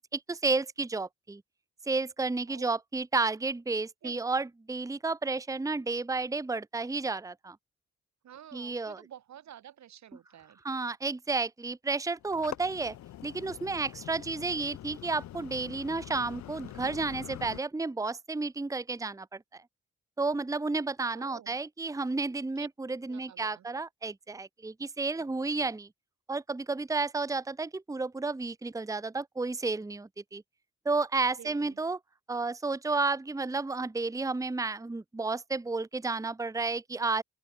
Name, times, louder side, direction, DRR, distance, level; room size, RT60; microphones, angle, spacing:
voice 1, 0.1-1.4 1.9-7.6 8.5-9.0 10.6-12.9 13.2-19.6 20.2-25.9 26.3-30.4 30.8-32.0 32.3-37.2, right 3 dB, 10° right, 0.8 m, -32 dB
voice 2, 2.5-2.8 4.0-4.2 8.2-10.6 21.1-21.6 22.6-22.7 23.1-23.7 31.4-31.8, right 10 dB, 65° right, 1.2 m, -50 dB
sound 1, 12.2-17.6, left 13 dB, 70° left, 0.7 m, -45 dB
open air
supercardioid pair, 45°, 30 cm